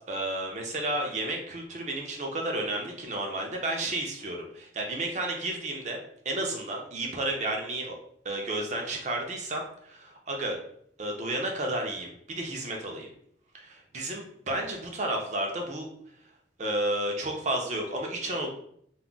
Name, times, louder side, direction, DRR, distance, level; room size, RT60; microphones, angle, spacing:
voice 1, 0.1-6.0 6.2-8.0 8.2-10.6 11.0-13.1 13.5-13.7 13.9-15.9 16.6-18.5, right 1 dB, 40° right, 2 dB, 0.5 m, -32 dB
2.3 x 2.0 x 3.7 m, 0.67 s
head